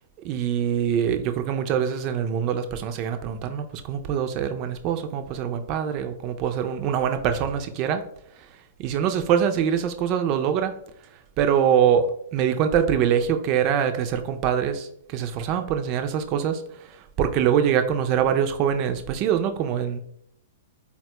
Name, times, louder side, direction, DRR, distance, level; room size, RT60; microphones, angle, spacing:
voice 1, 0.2-8.0 8.8-10.7 11.4-20.0, right 8 dB, 40° right, 8 dB, 0.4 m, -24 dB
4.1 x 2.2 x 2.9 m, 0.70 s
hypercardioid pair, 120°, 0 cm